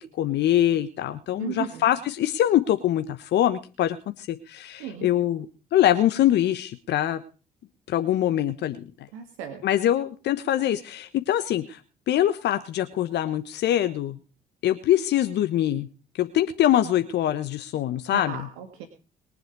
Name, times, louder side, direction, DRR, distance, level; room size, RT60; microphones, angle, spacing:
voice 1, 0.2-5.5 5.7-7.2 7.9-8.9 9.6-11.8 12.1-14.2 14.6-15.9 16.2-18.3, left 12 dB, 65° left, 10 dB, 1.2 m, -23 dB
voice 2, 1.4-1.9 4.8-5.1 9.1-9.6 18.1-18.9, right 8 dB, 75° right, 6 dB, 2.1 m, -35 dB
22.0 x 7.8 x 4.7 m, 0.35 s
hypercardioid pair, 50°, 19 cm